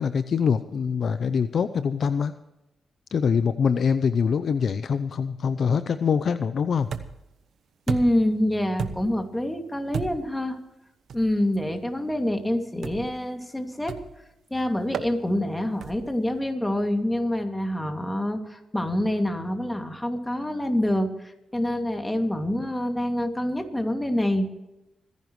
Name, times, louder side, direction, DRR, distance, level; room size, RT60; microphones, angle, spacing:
voice 1, 0.0-2.3 3.1-6.9, left 6 dB, 65° left, 12 dB, 0.6 m, -24 dB
sound 1, 6.9-7.3 7.9-8.3 8.8-9.2 9.9-10.4 11.1-11.3 12.8-13.2 13.9-14.2 14.9-15.1 15.8-16.2, right 6 dB, 75° right, 1.0 m, -33 dB
voice 2, 7.9-10.6 11.1-13.9 14.5-24.5, left 1 dB, 10° left, 5 dB, 2.5 m, -26 dB
26.5 x 11.0 x 3.2 m, 0.92 s
cardioid pair, 70°, 0 cm